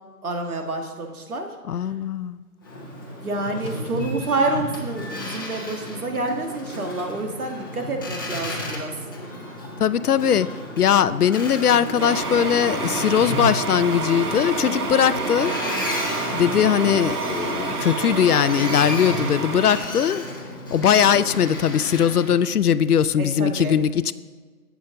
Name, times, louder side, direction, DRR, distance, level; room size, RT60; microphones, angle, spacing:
voice 1, 0.2-1.5 3.2-8.9 14.7-15.2 23.2-23.8, right 2 dB, 70° right, 3 dB, 1.8 m, -28 dB
voice 2, 1.7-2.4 9.8-10.5 10.8-15.5 16.3-20.2 20.7-24.1, left 8 dB, 80° left, 16 dB, 0.6 m, -20 dB
Boat Water vehicle, 2.6-22.4, left 1 dB, 15° left, 0.8 m, -33 dB
sound 1, 12.0-19.8, right 3 dB, 85° right, 1.4 m, -28 dB
10.5 x 8.2 x 3.8 m, 1.4 s
figure-of-eight pair, 160°, 45 cm